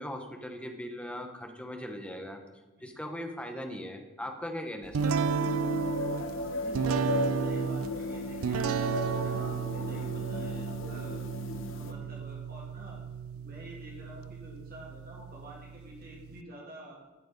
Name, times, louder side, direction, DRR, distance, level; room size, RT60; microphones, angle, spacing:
voice 1, 0.0-2.4 2.8-5.1, equal, 5° left, 4 dB, 1.0 m, -39 dB
sound 1, 4.9-16.4, right 6 dB, 85° right, 0.4 m, -33 dB
sound 2, 5.0-11.9, left 1 dB, 70° left, 0.9 m, -35 dB
voice 2, 6.6-11.2 11.7-13.0 13.3-17.0, equal, 45° right, -4 dB, 2.5 m, -49 dB
13.0 x 6.1 x 5.2 m, 1.2 s
head